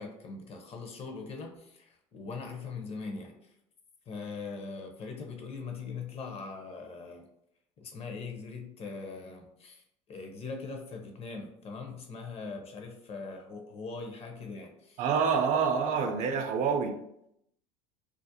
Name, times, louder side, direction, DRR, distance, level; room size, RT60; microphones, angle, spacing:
voice 1, 0.0-3.5 4.1-7.3 7.8-15.0, left 4 dB, 40° left, 3 dB, 0.6 m, -41 dB
voice 2, 15.0-16.9, right 6 dB, 50° right, 5 dB, 0.4 m, -27 dB
2.4 x 2.0 x 2.7 m, 0.76 s
hypercardioid pair, 85°, 16 cm